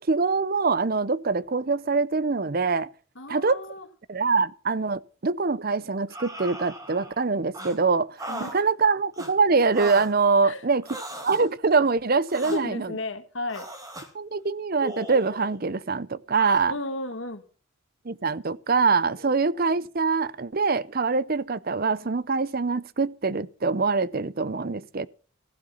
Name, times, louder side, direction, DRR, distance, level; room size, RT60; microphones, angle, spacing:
voice 1, 0.1-2.9 3.3-3.6 4.1-8.2 8.5-10.8 11.2-12.9 14.1-16.7 18.0-25.1, right 4 dB, 45° right, 0.6 m, -24 dB
voice 2, 3.2-3.9 8.3-8.7 10.4-10.6 12.4-13.7 16.7-17.4 19.2-19.3, left 2 dB, 65° left, 1.8 m, -34 dB
sound 1, 6.1-7.2 7.5-7.8 8.2-8.6 9.1-9.3 9.7-10.1 10.8-11.5 12.3-12.6 13.5-14.1 14.8-15.6 16.3-16.6, right 1 dB, 15° right, 2.4 m, -37 dB
15.5 x 7.9 x 7.1 m
head